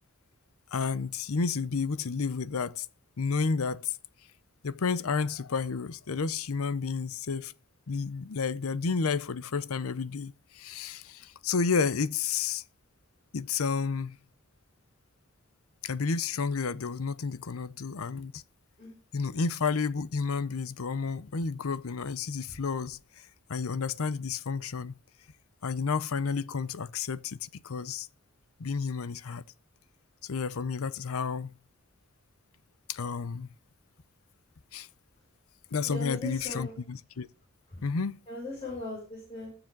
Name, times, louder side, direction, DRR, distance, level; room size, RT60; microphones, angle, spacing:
voice 1, 0.7-2.9 3.2-4.0 4.6-7.5 7.9-12.6 13.3-14.2 15.8-18.4 19.1-23.0 23.5-25.0 25.6-28.1 28.6-29.4 30.2-31.5 32.9-33.5 34.7-34.9 35.7-37.3 37.8-38.2, left 5 dB, 80° left, 0.6 m, -31 dB
voice 2, 35.8-36.7 38.3-39.5, left 2 dB, 25° left, 6.6 m, -39 dB
20.5 x 7.1 x 3.9 m
head